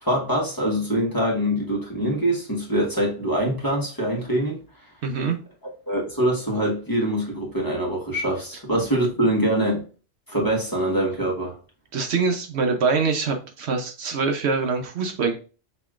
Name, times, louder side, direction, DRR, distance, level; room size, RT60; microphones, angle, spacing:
voice 1, 0.0-4.6 5.9-9.8 10.3-11.6, right 1 dB, 20° left, 1.3 m, -24 dB
voice 2, 5.0-5.4 11.9-15.4, right 4 dB, 70° right, 1.0 m, -24 dB
6.5 x 3.0 x 2.3 m
omnidirectional pair, 1.2 m